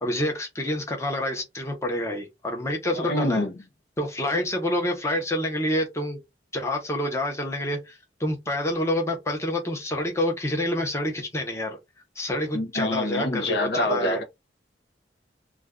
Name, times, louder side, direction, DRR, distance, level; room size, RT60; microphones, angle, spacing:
voice 1, 0.0-3.4 4.0-6.2 6.5-11.8 12.2-14.2, left 1 dB, 15° left, 0.7 m, -27 dB
voice 2, 2.9-3.5 12.5-14.2, left 1 dB, 65° left, 0.6 m, -26 dB
2.4 x 2.2 x 3.5 m
head